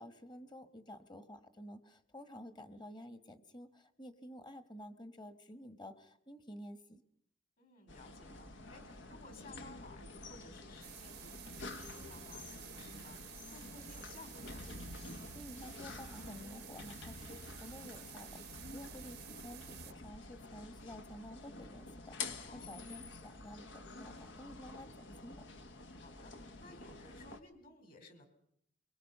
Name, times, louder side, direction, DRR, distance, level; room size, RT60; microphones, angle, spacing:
voice 1, 0.0-7.0 15.3-25.4, equal, 25° left, 11 dB, 1.4 m, -51 dB
voice 2, 7.6-14.7 18.7-19.1 22.3-22.8 25.9-28.3, left 2 dB, 50° left, 6 dB, 4.6 m, -57 dB
sound 1, 7.9-27.4, left 3 dB, 80° left, 1.3 m, -49 dB
sound 2, 10.8-19.9, right 14 dB, 60° right, 0.8 m, -53 dB
24.0 x 23.0 x 5.6 m, 0.72 s
head